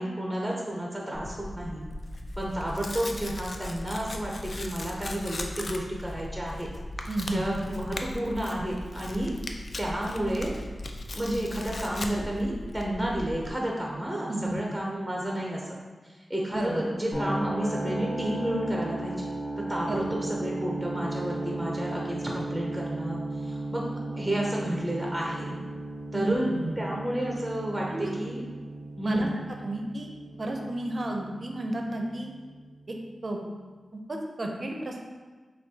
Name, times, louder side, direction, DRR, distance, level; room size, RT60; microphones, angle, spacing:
voice 1, 0.0-1.8 2.4-6.7 7.3-9.3 9.8-10.5 11.1-15.6 16.0-19.3 19.6-23.8 24.1-25.6 26.1-28.4 29.0-29.3, right 1 dB, 5° right, -2 dB, 0.6 m, -31 dB
Tearing, 1.1-13.5, left 1 dB, 55° left, 0.3 m, -38 dB
voice 2, 7.1-7.4 14.3-14.6 16.5-16.8 19.9-20.1 26.1-26.8 27.9-28.1 29.0-29.3 29.6-30.1 30.4-32.3 32.9-33.0 33.2-33.4 33.9-35.0, right 1 dB, 45° right, 1 dB, 0.5 m, -32 dB
sound 1, 17.1-33.0, right 2 dB, 30° left, 1.3 m, -36 dB
5.8 x 2.3 x 2.7 m, 1.4 s
cardioid pair, 65°, 0 cm